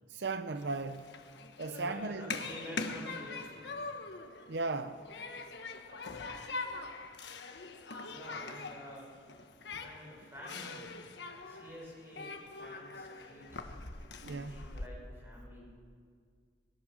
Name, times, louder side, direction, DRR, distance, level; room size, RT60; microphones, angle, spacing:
voice 1, 0.1-1.2 1.6-2.4 4.5-5.1 14.2-14.6, right 3 dB, 75° right, 0.7 m, -37 dB
Human group actions, 0.6-14.9, left 3 dB, 80° left, 1.4 m, -43 dB
voice 2, 1.7-3.8 8.1-9.2 9.5-11.0 11.4-13.5 14.2-15.6, equal, 15° right, 6.8 m, -49 dB
21.0 x 20.5 x 6.3 m
head